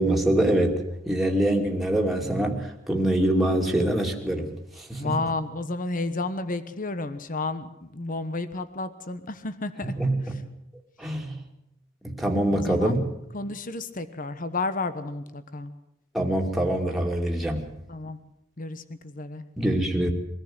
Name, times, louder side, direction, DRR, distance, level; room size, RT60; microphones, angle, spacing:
voice 1, 0.0-5.2 9.8-10.1 11.0-11.4 12.0-13.0 16.1-17.7 19.6-20.1, right 1 dB, ahead, -1 dB, 2.7 m, -24 dB
voice 2, 5.0-9.9 12.5-13.0 13.3-15.7 17.9-18.2 18.6-19.4, left 3 dB, 45° left, 12 dB, 1.2 m, -31 dB
23.0 x 14.5 x 8.0 m, 0.83 s
head